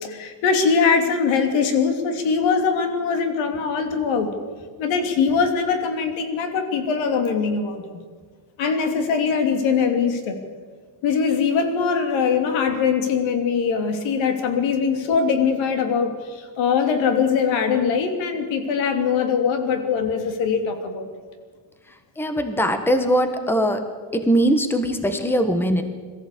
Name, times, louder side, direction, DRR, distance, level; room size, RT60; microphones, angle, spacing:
voice 1, 0.0-4.3 4.8-8.0 8.6-10.4 11.0-21.1, left 6 dB, 85° left, 6 dB, 2.9 m, -22 dB
voice 2, 22.2-23.9 24.1-25.8, equal, 5° left, 8 dB, 1.3 m, -21 dB
22.0 x 14.5 x 8.5 m, 1.5 s
cardioid pair, 150°, 45 cm